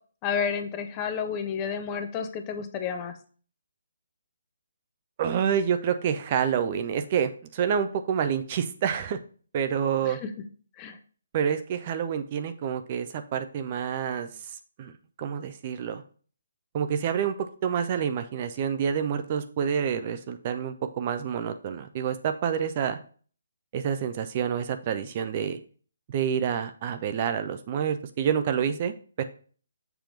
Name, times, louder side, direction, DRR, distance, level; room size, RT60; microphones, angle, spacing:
voice 1, 0.2-3.1 10.8-11.0, left 7 dB, 25° left, 7 dB, 0.7 m, -30 dB
voice 2, 5.2-9.2 9.5-10.2 11.3-14.3 14.8-14.9 15.2-16.0 16.7-23.0 23.7-25.6 26.1-29.2, right 8 dB, 35° right, 9 dB, 0.5 m, -28 dB
6.9 x 2.9 x 5.1 m, 0.42 s
figure-of-eight pair, 140°, 0 cm